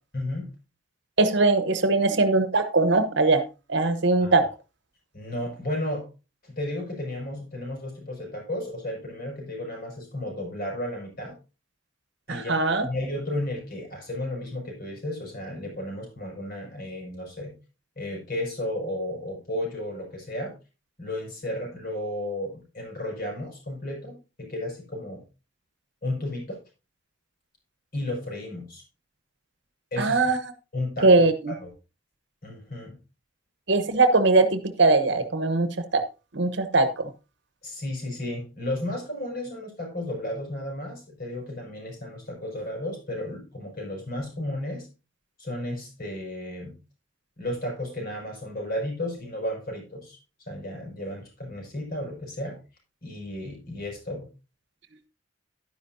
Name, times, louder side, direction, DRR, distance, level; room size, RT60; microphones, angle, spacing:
voice 1, 0.1-0.5 4.2-4.3 5.1-6.1 6.4-11.4 12.3-12.6 12.8-17.5 18.0-20.5 21.0-24.1 24.4-25.2 26.0-26.6 27.9-28.8 29.9-30.2 30.7-31.7 32.4-32.9 37.6-44.9 45.4-46.7 47.4-50.2 50.5-52.6 53.0-54.3, left 1 dB, 50° left, 1 dB, 5.9 m, -33 dB
voice 2, 1.2-3.4 3.7-4.4 12.3-12.9 30.0-30.4 31.0-31.5 33.7-36.0 36.3-37.1, right 3 dB, 65° right, 10 dB, 1.1 m, -21 dB
11.5 x 10.0 x 2.7 m, 0.30 s
head